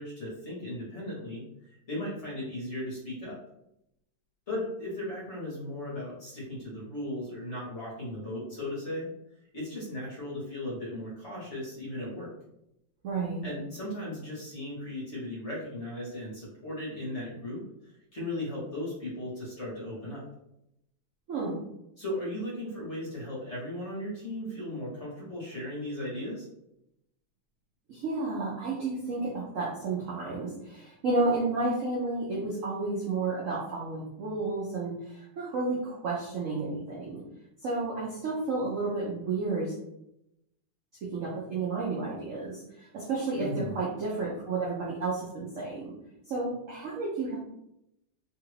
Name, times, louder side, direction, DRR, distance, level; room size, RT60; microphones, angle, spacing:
voice 1, 0.0-1.4 1.9-3.4 4.5-9.1 9.5-12.3 13.4-20.2 22.0-26.5 43.3-43.8, left 1 dB, 45° left, -6 dB, 1.2 m, -36 dB
voice 2, 13.0-13.5 21.3-21.5 27.9-37.2 37.6-39.7 41.1-45.9 46.3-47.4, right 3 dB, 65° right, -5 dB, 0.8 m, -31 dB
3.2 x 2.4 x 3.2 m, 0.82 s
omnidirectional pair, 2.1 m